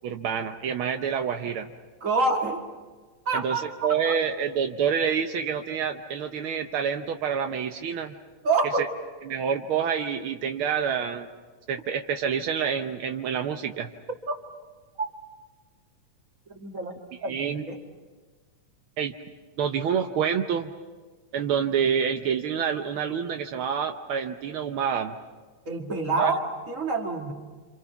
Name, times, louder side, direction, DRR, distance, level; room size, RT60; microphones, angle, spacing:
voice 1, 0.0-1.7 3.3-8.1 8.8-8.9 9.3-11.3 11.7-13.9 17.2-17.6 19.0-19.1 19.6-20.7 21.3-25.1 26.2-26.3, right 7 dB, 80° right, 5 dB, 1.2 m, -27 dB
voice 2, 2.0-2.6 3.3-4.1 8.4-8.8 14.3-14.4 15.0-15.1 16.5-16.9 17.2-17.8 25.7-26.4 26.7-27.3, right 3 dB, 30° right, 2 dB, 2.2 m, -27 dB
27.5 x 27.0 x 5.9 m, 1.4 s
omnidirectional pair, 3.5 m